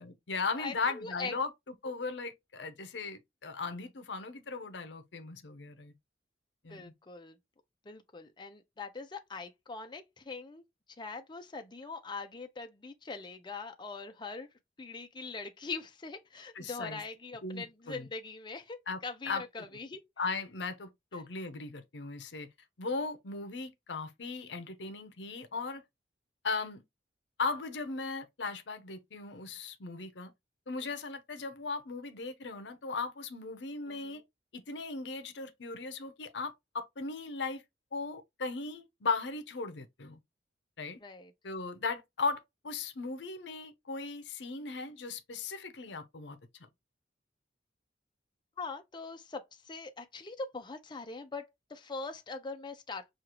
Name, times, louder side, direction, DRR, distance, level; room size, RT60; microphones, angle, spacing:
voice 1, 0.0-1.5 1.8-5.9 6.6-6.9 16.5-17.0 17.4-18.1 18.9-19.0 19.2-19.4 20.2-22.5 22.8-25.8 26.4-26.8 27.4-30.3 30.7-34.2 34.5-37.6 37.9-40.2 40.8-41.0 41.4-46.4, left 4 dB, 75° left, 0.7 m, -37 dB
voice 2, 0.6-1.3 6.7-7.4 7.9-10.6 11.0-14.5 14.8-20.0 33.9-34.2 41.0-41.3 48.6-51.4 51.7-53.1, left 4 dB, 25° left, 0.6 m, -42 dB
6.3 x 2.4 x 2.9 m
head